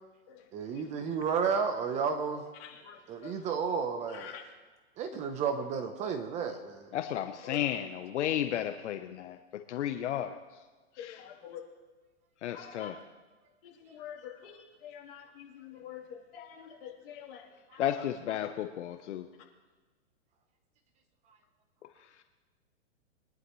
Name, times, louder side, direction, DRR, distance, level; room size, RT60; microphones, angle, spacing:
voice 1, 0.5-2.4 3.1-4.3 5.0-6.9, right 6 dB, 20° right, 7 dB, 0.8 m, -32 dB
voice 2, 2.6-3.3 4.1-4.4 7.4-7.6 11.0-11.6 12.5-12.9 13.8-14.5 14.8-16.0 16.3-17.4 17.7-17.8, left 9 dB, 50° left, -2 dB, 3.3 m, -46 dB
voice 3, 6.9-9.4 9.7-10.4 11.0-11.2 12.4-12.9 17.8-19.3, left 11 dB, 70° left, 6 dB, 1.0 m, -33 dB
23.5 x 11.0 x 3.1 m, 1.3 s
hypercardioid pair, 150°, 37 cm